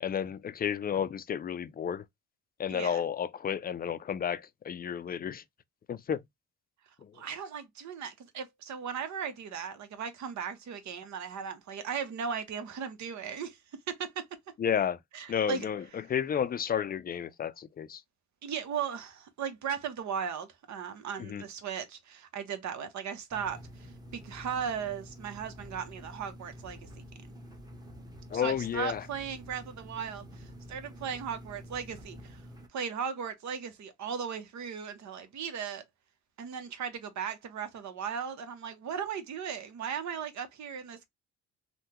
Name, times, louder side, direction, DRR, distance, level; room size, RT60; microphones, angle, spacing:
voice 1, 0.0-2.0 2.6-5.4 5.9-6.2 7.0-7.2 14.6-15.0 15.3-18.0 21.2-21.4 28.3-29.0, left 8 dB, 30° left, 0.4 m, -32 dB
voice 2, 2.7-3.0 7.1-14.3 15.1-15.7 18.4-27.0 28.3-32.4 32.7-35.8 36.4-41.1, right 7 dB, 65° right, 0.9 m, -37 dB
sound 1, 23.3-32.7, equal, 15° right, 1.0 m, -48 dB
3.4 x 2.2 x 2.9 m
cardioid pair, 90°, 30 cm